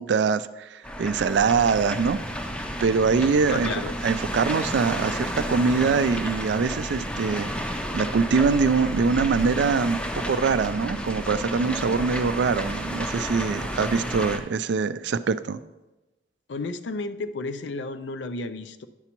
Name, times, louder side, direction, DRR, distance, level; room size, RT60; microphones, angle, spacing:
voice 1, 0.0-2.2 2.8-10.0 10.3-15.6, right 5 dB, 70° right, 14 dB, 0.3 m, -23 dB
sound 1, 0.8-14.4, equal, 5° left, 0.5 m, -31 dB
voice 2, 3.5-4.0 16.5-18.9, left 3 dB, 80° left, 11 dB, 0.5 m, -32 dB
9.7 x 7.0 x 3.0 m, 1.0 s
head